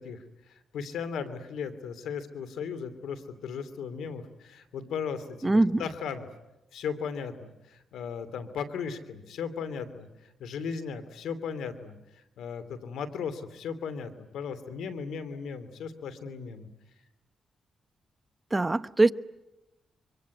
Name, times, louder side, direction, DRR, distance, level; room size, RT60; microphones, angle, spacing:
voice 1, 0.0-6.3 6.7-10.1 10.4-12.0 12.4-16.7, left 6 dB, 85° left, 2.8 m, -36 dB
voice 2, 5.4-5.8 18.5-19.1, right 2 dB, 20° right, 0.9 m, -22 dB
24.5 x 24.5 x 9.6 m
cardioid pair, 80°, 0 cm